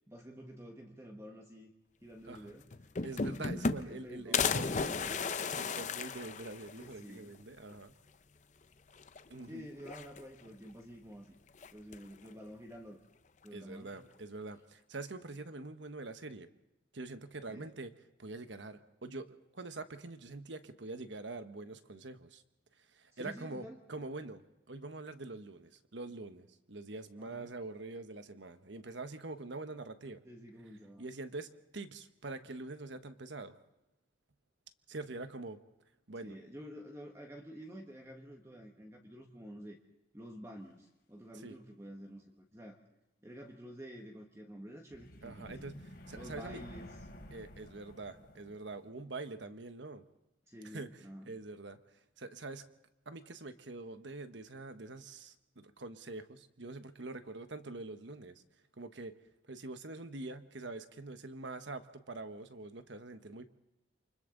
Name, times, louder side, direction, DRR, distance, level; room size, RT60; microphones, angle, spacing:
voice 1, 0.1-1.7 2.0-2.7 3.3-5.2 6.8-7.4 9.5-11.3 11.7-13.0 13.4-13.9 17.5-17.7 23.1-23.8 27.2-27.5 30.2-31.0 36.2-39.8 40.1-42.8 43.2-45.7 46.2-46.9 50.5-51.3, equal, 15° right, 1 dB, 1.5 m, -49 dB
sound 1, 2.4-2.5 2.7-4.0 4.3-6.9 7.3-7.4 7.7-7.8 9.0-9.4 9.8-10.5 11.6-12.1, left 5 dB, 40° left, 0.6 m, -35 dB
voice 2, 3.0-4.9 5.6-7.9 9.3-9.7 13.5-16.5 16.9-17.9 18.2-22.4 22.9-30.2 31.0-33.5 34.9-35.6 36.1-36.4 41.4-41.5 45.2-45.8 46.1-46.6 47.3-50.0 50.6-50.9 51.3-51.8 52.2-52.6 53.1-58.4 58.8-59.1 59.5-63.5, right 2 dB, 70° right, 9 dB, 1.2 m, -45 dB
sound 2, 44.9-48.9, left 1 dB, 55° left, 3.1 m, -51 dB
28.5 x 25.0 x 3.9 m, 0.93 s
head